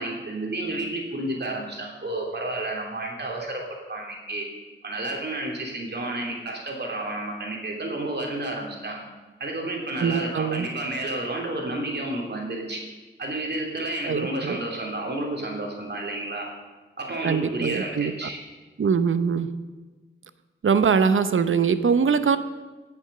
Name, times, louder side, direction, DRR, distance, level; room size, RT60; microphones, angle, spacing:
voice 1, 0.0-3.6 3.9-4.5 4.8-9.0 9.4-12.8 13.2-16.5 17.0-18.4, right 1 dB, 55° right, 0 dB, 3.0 m, -31 dB
voice 2, 10.0-10.7 14.0-14.6 17.2-18.1 18.8-19.5 20.6-22.4, right 6 dB, 70° right, 12 dB, 0.8 m, -22 dB
17.5 x 7.1 x 6.7 m, 1.3 s
wide cardioid pair, 115°, 21 cm